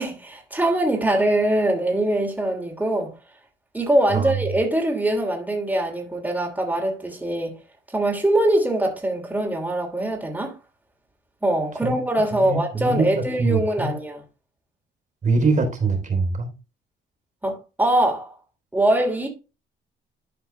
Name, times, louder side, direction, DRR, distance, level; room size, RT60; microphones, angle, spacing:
voice 1, 0.0-3.1 3.7-7.6 7.9-10.5 11.4-14.2 17.4-18.3 18.7-19.3, right 1 dB, 10° right, 2.9 m, -23 dB
voice 2, 12.3-13.9 15.2-16.5, right 3 dB, 40° right, 3.4 m, -23 dB
12.5 x 4.5 x 3.3 m
cardioid pair, 90°, 20 cm